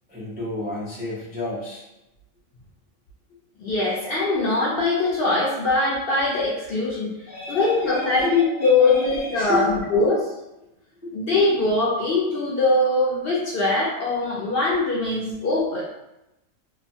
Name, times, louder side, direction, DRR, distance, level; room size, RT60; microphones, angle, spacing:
voice 1, 0.1-1.8 7.2-9.9 11.0-11.1, left 1 dB, 15° right, -8 dB, 0.4 m, -31 dB
voice 2, 3.6-7.1 7.5-10.2 11.1-15.9, left 2 dB, 55° left, -6 dB, 0.7 m, -22 dB
3.0 x 2.1 x 2.6 m, 0.92 s
omnidirectional pair, 1.4 m